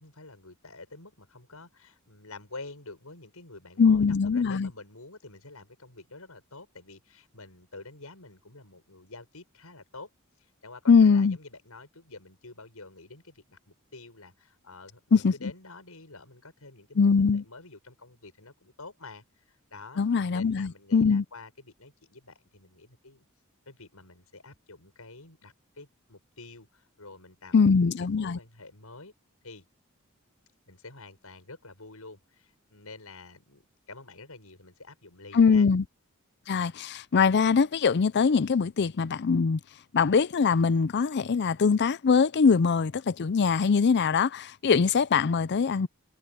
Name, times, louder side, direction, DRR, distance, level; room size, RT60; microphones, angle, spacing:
voice 1, 0.0-10.1 10.4-20.0 20.3-23.2 23.7-27.7 28.0-29.1 29.4-29.6 30.7-33.6 33.9-35.7, left 3 dB, 85° left, 7.3 m, -48 dB
voice 2, 3.8-4.7 10.9-11.4 15.1-15.3 17.0-17.4 20.0-21.2 27.5-28.4 35.3-35.8 36.5-39.6 39.9-45.9, left 5 dB, 50° left, 0.5 m, -22 dB
head